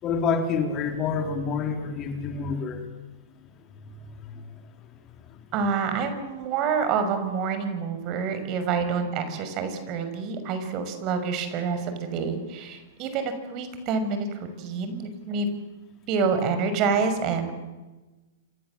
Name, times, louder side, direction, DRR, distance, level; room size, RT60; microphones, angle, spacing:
voice 1, 0.0-2.8 3.8-4.4, left 5 dB, 30° left, 5 dB, 4.1 m, -28 dB
voice 2, 5.5-15.5 16.1-17.5, right 5 dB, 40° right, 8 dB, 5.9 m, -27 dB
28.0 x 28.0 x 7.5 m, 1.2 s
hypercardioid pair, 115°, 0 cm